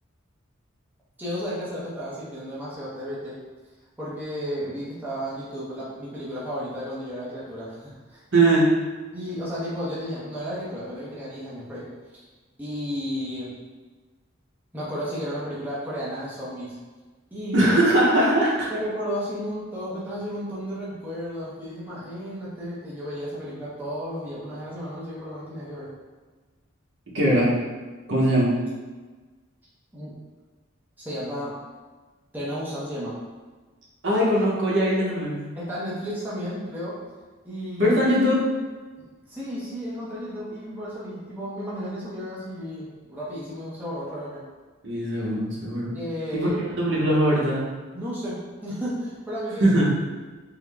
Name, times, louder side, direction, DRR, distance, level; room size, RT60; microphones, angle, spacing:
voice 1, 1.2-3.4 4.0-8.5 9.1-11.9 12.1-12.3 12.6-13.5 14.7-16.8 17.3-17.7 18.7-25.9 29.9-30.1 31.0-31.6 32.3-33.2 35.6-37.0 37.4-38.0 39.3-44.4 45.9-46.6 47.9-49.7, equal, 10° right, -9 dB, 0.7 m, -33 dB
voice 2, 8.3-8.6 17.5-18.7 27.1-27.5 28.1-28.5 34.0-35.4 37.8-38.4 44.8-45.9 46.3-46.5 46.8-47.6 49.6-49.9, right 1 dB, 65° right, -6 dB, 0.9 m, -20 dB
3.7 x 2.1 x 3.3 m, 1.3 s
head